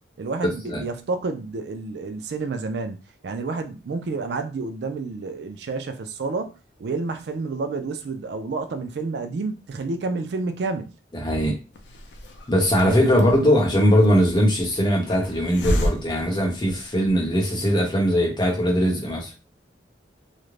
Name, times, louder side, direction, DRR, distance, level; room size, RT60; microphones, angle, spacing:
voice 1, 0.2-3.0 3.2-10.9 12.8-13.1, right 3 dB, 65° right, 0.4 m, -29 dB
voice 2, 11.1-11.6 12.5-19.3, equal, 25° left, 0.8 m, -20 dB
Hiss, 11.7-17.2, equal, 85° left, 0.5 m, -32 dB
2.5 x 2.0 x 3.1 m
head